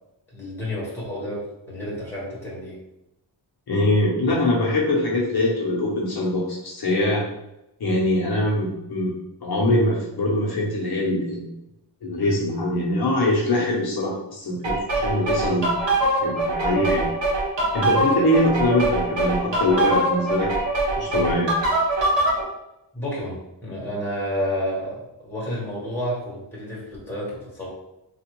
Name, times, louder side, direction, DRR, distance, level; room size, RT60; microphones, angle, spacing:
voice 1, 0.3-2.8 22.9-27.7, equal, 5° left, -6 dB, 1.1 m, -30 dB
voice 2, 3.7-7.2 7.8-9.1 9.4-11.5 12.0-15.7 16.2-17.1 17.7-20.5 21.0-21.5, left 1 dB, 60° left, -4 dB, 0.8 m, -23 dB
sound 1, 14.6-22.4, right 2 dB, 80° right, 0.8 m, -23 dB
3.4 x 2.4 x 2.9 m, 0.87 s
wide cardioid pair, 175°, 43 cm